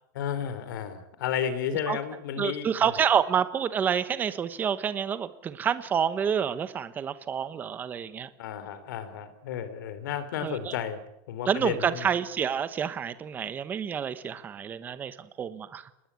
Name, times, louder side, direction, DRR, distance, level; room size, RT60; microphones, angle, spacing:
voice 1, 0.1-2.9 8.4-11.0 11.3-12.1, left 9 dB, 85° left, 14 dB, 3.6 m, -32 dB
voice 2, 2.4-8.3 10.4-10.7 11.5-15.9, right 7 dB, 15° right, 14 dB, 1.1 m, -28 dB
26.0 x 20.5 x 8.4 m, 0.83 s
supercardioid pair, 175°, 10 cm